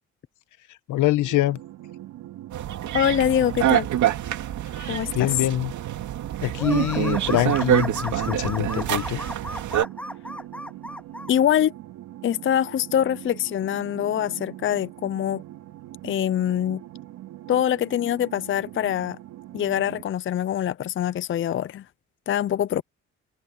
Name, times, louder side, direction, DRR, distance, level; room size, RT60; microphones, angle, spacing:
voice 1, 0.9-1.6 4.7-5.7 6.4-9.2, left 15 dB, 85° left, 1.2 m, -25 dB
sound 1, 1.2-20.0, right 14 dB, 90° right, 3.6 m, -42 dB
sound 2, 2.5-9.8, right 11 dB, 70° right, 2.6 m, -26 dB
voice 2, 2.9-3.9 4.9-5.3 11.3-11.7 12.2-15.4 16.0-16.8 17.5-19.2 19.5-21.8 22.3-22.8, left 10 dB, 40° left, 0.5 m, -24 dB
sound 3, 6.6-11.3, left 1 dB, 5° left, 2.4 m, -34 dB
cardioid pair, 90°, 30 cm